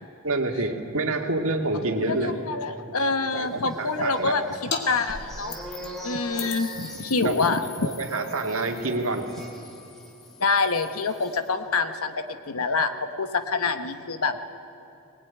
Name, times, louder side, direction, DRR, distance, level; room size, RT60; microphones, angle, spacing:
voice 1, 0.2-2.3 3.3-4.3 7.2-7.5 7.8-9.3, right 2 dB, 65° right, 3 dB, 2.2 m, -27 dB
voice 2, 2.0-5.5 6.0-7.6 10.4-14.4, left 4 dB, 75° left, 8 dB, 1.3 m, -26 dB
sound 1, 3.6-10.4 10.6-10.8 11.1-11.4, equal, ahead, 3.1 m, -42 dB
sound 2, 4.7-4.8 5.1-6.0 6.4-11.5, left 5 dB, 50° left, 2.3 m, -38 dB
21.0 x 20.0 x 9.6 m, 2.8 s
head